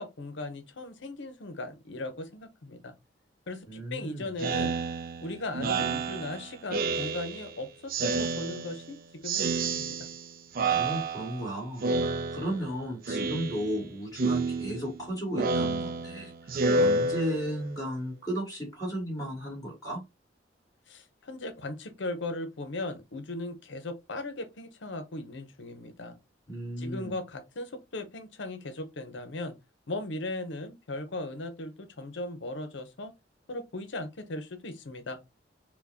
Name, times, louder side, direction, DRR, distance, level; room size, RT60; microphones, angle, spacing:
voice 1, 0.0-2.9 3.5-4.8 5.2-10.0 20.9-26.2 26.8-29.6 29.9-33.1 33.5-35.2, left 2 dB, 70° left, 0.7 m, -38 dB
voice 2, 3.7-4.3 10.7-20.0 26.5-27.2, equal, 20° left, 2.1 m, -35 dB
Speech synthesizer, 4.4-7.5 7.9-8.9 9.2-10.3 10.5-11.5 11.8-12.7 13.0-13.8 14.1-17.7, right 3 dB, 50° right, 0.4 m, -29 dB
4.4 x 2.2 x 2.7 m
head